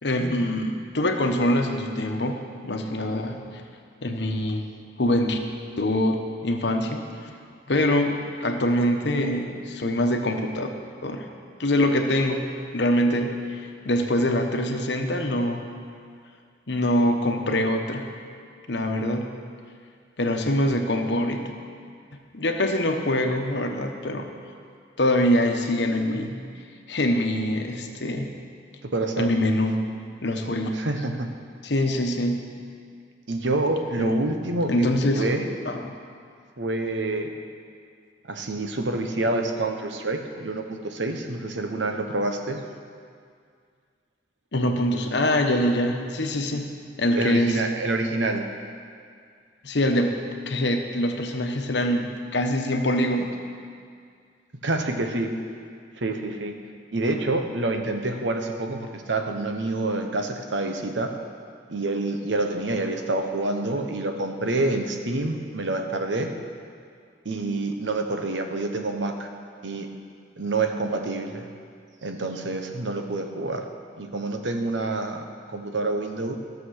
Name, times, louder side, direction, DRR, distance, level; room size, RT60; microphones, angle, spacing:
voice 1, 0.0-2.4 2.6-3.4 4.0-4.6 5.0-5.4 5.8-7.0 7.7-10.7 11.0-11.3 11.6-12.4 12.7-15.7 16.7-18.0 18.7-19.3 20.2-21.4 22.3-24.3 25.0-26.3 26.9-28.3 29.2-29.8 30.2-30.7 31.6-32.4 34.0-34.2 34.7-35.3 35.7-36.0 44.5-46.7 47.0-47.6 49.6-50.2 50.5-53.3, left 1 dB, 70° left, 4 dB, 1.1 m, -24 dB
voice 2, 28.9-29.3 30.7-31.3 33.3-35.5 36.6-37.3 38.3-42.6 47.1-48.4 54.6-55.3 56.0-56.5 56.9-61.1 61.7-66.3 67.2-69.3 69.6-69.9 70.4-71.5 72.0-73.6 74.0-75.2 75.5-76.4, right 2 dB, 90° right, 5 dB, 1.1 m, -27 dB
14.5 x 6.8 x 6.5 m, 2.2 s
head